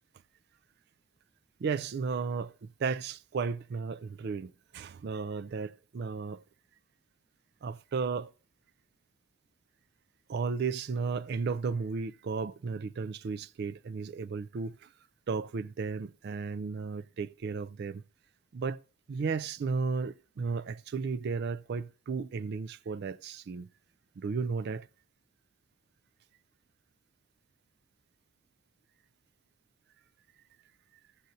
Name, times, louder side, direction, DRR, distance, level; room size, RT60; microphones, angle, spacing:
voice 1, 1.6-6.4 7.6-8.3 10.3-14.9 15.3-18.0 18.5-18.8 19.1-23.7 24.2-24.9, right 5 dB, 50° right, 0.3 m, -34 dB
14.5 x 7.7 x 2.7 m
head